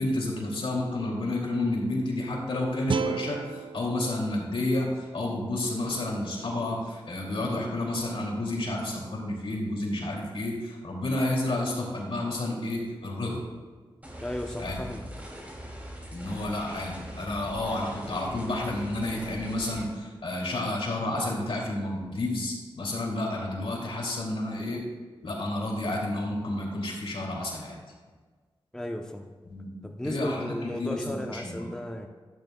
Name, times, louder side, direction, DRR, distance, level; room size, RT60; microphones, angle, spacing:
voice 1, 0.0-13.4 14.6-14.8 16.1-24.8 25.2-27.8 29.5-29.7 30.0-31.7, left 1 dB, 75° left, -2 dB, 2.6 m, -30 dB
sound 1, 2.9-6.0, right 7 dB, 60° right, 0.3 m, -35 dB
sound 2, 14.0-19.8, equal, 15° right, 2.7 m, -42 dB
voice 2, 14.2-15.0 28.7-29.4 29.8-32.1, left 1 dB, 5° left, 3 dB, 0.7 m, -35 dB
12.0 x 11.5 x 2.3 m, 1.4 s
cardioid pair, 65°, 9 cm